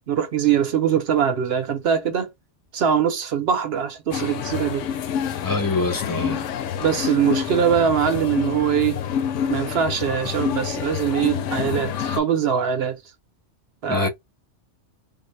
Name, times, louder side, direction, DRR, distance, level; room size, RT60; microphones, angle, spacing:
voice 1, 0.1-2.3 2.7-4.9 6.8-9.0 9.5-13.0 13.8-14.1, right 8 dB, 60° right, 0.8 m, -22 dB
sound 1, 4.1-12.2, left 8 dB, 90° left, 0.9 m, -27 dB
voice 2, 5.4-6.4 13.9-14.1, left 3 dB, 25° left, 0.4 m, -24 dB
3.7 x 2.0 x 3.2 m
omnidirectional pair, 1.2 m